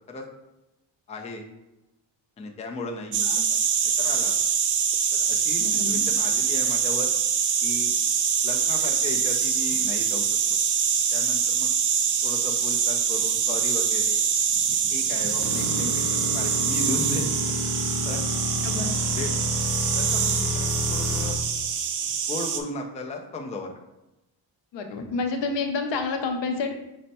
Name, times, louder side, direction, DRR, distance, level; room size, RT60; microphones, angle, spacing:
voice 1, 1.1-1.5 2.4-3.3 3.8-4.3 5.2-7.1 7.6-7.9 8.4-10.2 10.5-10.6 11.1-11.7 12.2-14.2 14.9-17.3 18.0-18.3 19.1-19.5 19.9-21.4 22.3-23.7, left 2 dB, 15° left, 2 dB, 0.4 m, -35 dB
sound 1, 3.1-22.6, right 7 dB, 45° right, 0.5 m, -24 dB
voice 2, 5.6-6.0 18.6-18.9 20.7-20.8 24.7-26.7, left 4 dB, 75° left, 5 dB, 0.7 m, -29 dB
sound 2, 15.4-21.3, left 2 dB, ahead, 0.9 m, -30 dB
5.3 x 2.1 x 4.1 m, 0.95 s
cardioid pair, 125°, 44 cm